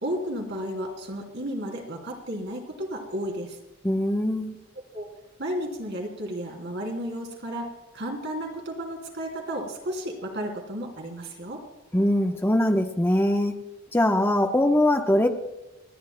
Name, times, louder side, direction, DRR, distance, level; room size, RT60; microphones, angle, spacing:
voice 1, 0.0-3.6 4.9-5.1 5.4-11.6, equal, 55° right, 2 dB, 3.0 m, -33 dB
voice 2, 3.8-4.6 11.9-13.5 13.9-15.3, left 1 dB, 10° left, 4 dB, 0.9 m, -22 dB
29.5 x 10.5 x 2.2 m, 0.98 s
head